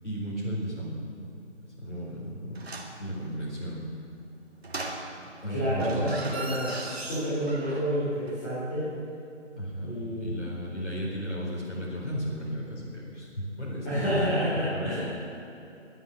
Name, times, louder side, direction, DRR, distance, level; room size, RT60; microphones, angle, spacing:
voice 1, 0.0-1.3 1.6-2.6 3.0-3.9 5.4-6.1 9.6-14.4 14.7-15.0, equal, 65° left, -5 dB, 4.5 m, -34 dB
sound 1, 2.6-3.0 4.6-5.4 5.7-8.0 8.3-8.4, right 2 dB, 55° right, 2.1 m, -37 dB
voice 2, 5.5-8.9 9.8-10.3 13.8-15.0, equal, 15° left, -11 dB, 4.3 m, -29 dB
22.0 x 8.2 x 7.7 m, 2.8 s
figure-of-eight pair, 150°, 36 cm